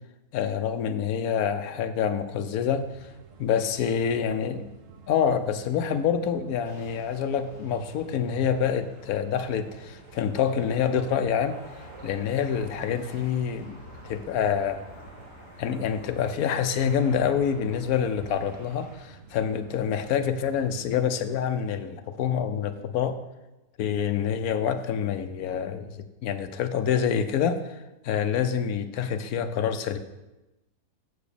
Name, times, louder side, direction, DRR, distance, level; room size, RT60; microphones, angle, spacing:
voice 1, 0.3-2.9 3.4-4.6 5.1-11.6 12.0-13.8 14.0-14.8 15.6-23.2 23.8-26.0 26.2-27.6 28.0-30.0, left 8 dB, 70° left, 9 dB, 1.1 m, -26 dB
sound 1, 2.7-21.0, right 5 dB, 60° right, 1.1 m, -50 dB
sound 2, 6.6-19.0, equal, 30° left, 3.1 m, -48 dB
7.2 x 4.9 x 6.7 m, 1.0 s
omnidirectional pair, 1.7 m